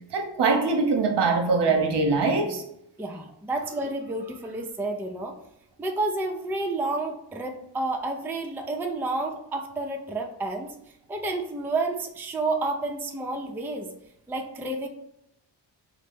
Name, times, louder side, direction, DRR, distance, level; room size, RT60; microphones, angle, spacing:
voice 1, 0.1-2.6, right 4 dB, 55° right, 3 dB, 0.8 m, -23 dB
voice 2, 3.0-5.3 5.8-10.7 11.1-13.9 14.3-14.9, right 2 dB, 5° right, 2 dB, 0.4 m, -30 dB
3.1 x 2.1 x 3.3 m, 0.79 s
supercardioid pair, 45°, 50 cm